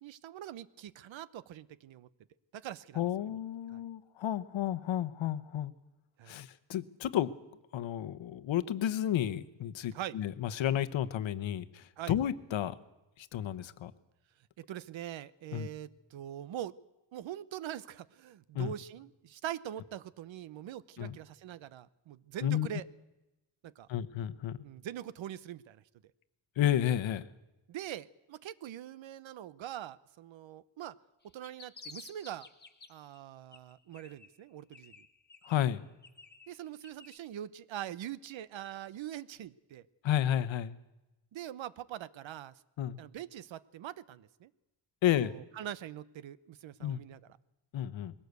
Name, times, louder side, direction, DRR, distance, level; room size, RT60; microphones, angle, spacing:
voice 1, 0.0-2.1 2.5-3.4 3.7-3.8 6.2-6.4 9.9-10.2 12.0-12.1 14.6-16.7 17.1-22.9 23.6-23.9 24.6-25.8 27.7-31.0 31.3-32.5 32.9-34.9 36.5-39.8 41.3-42.5 43.0-44.5 45.1-47.2, right 11 dB, 85° right, 18 dB, 0.9 m, -43 dB
voice 2, 2.9-5.7 6.3-7.3 7.7-12.7 13.2-13.9 15.5-15.7 18.5-18.7 21.0-21.2 22.4-22.7 23.9-24.6 26.6-27.2 35.4-35.8 40.0-40.8 42.8-43.0 45.0-45.3 46.8-47.0 47.7-48.1, left 11 dB, 90° left, 14 dB, 1.0 m, -32 dB
sound 1, 31.2-33.2 33.5-34.4 34.7-37.2, left 4 dB, 20° left, 1.6 m, -53 dB
21.0 x 17.0 x 8.1 m, 1.0 s
wide cardioid pair, 120°, 45 cm